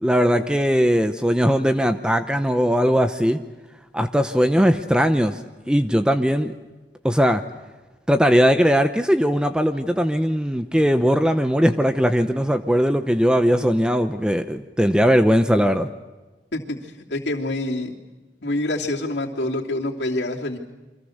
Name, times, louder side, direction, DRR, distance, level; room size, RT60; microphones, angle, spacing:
voice 1, 0.0-3.4 3.9-5.4 5.7-6.5 7.0-7.4 8.1-15.9, equal, 5° right, 8 dB, 0.8 m, -19 dB
voice 2, 16.5-17.9 18.4-20.6, left 1 dB, 75° left, -2 dB, 3.1 m, -26 dB
29.0 x 25.0 x 6.6 m, 1.2 s
head